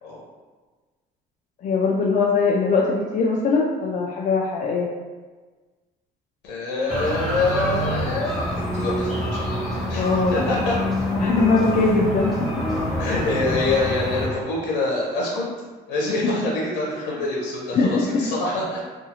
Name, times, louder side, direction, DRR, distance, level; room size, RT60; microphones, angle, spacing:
voice 1, 1.6-4.9 9.9-10.4 11.1-12.5 17.7-17.9, left 4 dB, 50° left, -2 dB, 0.4 m, -21 dB
voice 2, 6.4-9.6 9.9-10.8 13.0-15.5 15.9-18.8, left 2 dB, 85° left, -4 dB, 0.6 m, -25 dB
sound 1, 6.9-14.3, left 1 dB, ahead, 0.8 m, -26 dB
2.6 x 2.4 x 2.8 m, 1.4 s
cardioid pair, 110°, 17 cm